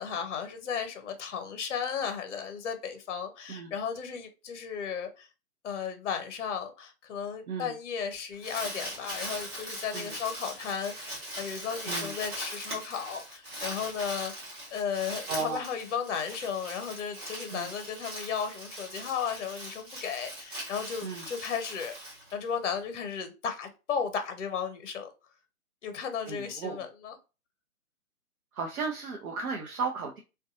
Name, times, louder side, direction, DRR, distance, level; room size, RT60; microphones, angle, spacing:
voice 1, 0.0-5.3 5.6-14.3 14.7-21.9 22.3-25.1 25.8-27.2, left 7 dB, 55° left, 0.6 m, -35 dB
Crumpling crinkling, 8.1-22.8, equal, 20° right, 0.7 m, -40 dB
voice 2, 15.3-15.6 17.5-17.7 21.0-21.3 26.3-26.8 28.5-30.2, right 5 dB, 70° right, 0.6 m, -34 dB
2.6 x 2.3 x 2.5 m
figure-of-eight pair, 140°, 45 cm